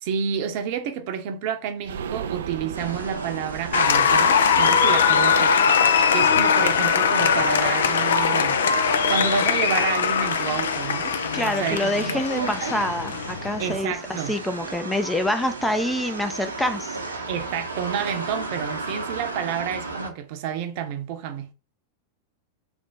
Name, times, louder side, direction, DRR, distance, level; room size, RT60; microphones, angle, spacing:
voice 1, 0.0-5.6 6.1-8.6 9.1-11.2 11.6-12.8 13.6-14.4 17.3-21.5, right 8 dB, 50° right, 0.7 m, -29 dB
sound 1, 1.8-7.5 7.8-7.9 8.2-8.3, right 8 dB, 70° right, 0.3 m, -37 dB
sound 2, 2.7-20.1, right 3 dB, 85° right, 0.9 m, -35 dB
Applause, 3.7-13.8, left 6 dB, 70° left, 0.4 m, -21 dB
voice 2, 11.3-17.0, left 1 dB, 5° left, 0.4 m, -26 dB
3.4 x 2.9 x 4.0 m
figure-of-eight pair, 90°, 0 cm